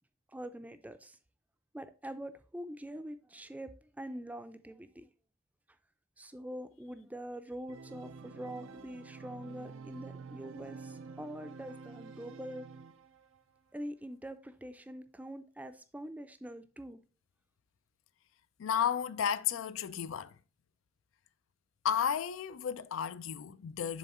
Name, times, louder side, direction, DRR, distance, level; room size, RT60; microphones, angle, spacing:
voice 1, 0.3-1.2 1.7-5.1 6.2-12.7 13.7-17.0, right 1 dB, 10° right, 0.4 m, -44 dB
Organ, 7.7-13.4, right 4 dB, 90° right, 0.5 m, -49 dB
voice 2, 18.6-20.3 21.8-24.0, left 8 dB, 85° left, 0.4 m, -33 dB
7.1 x 3.6 x 4.2 m
head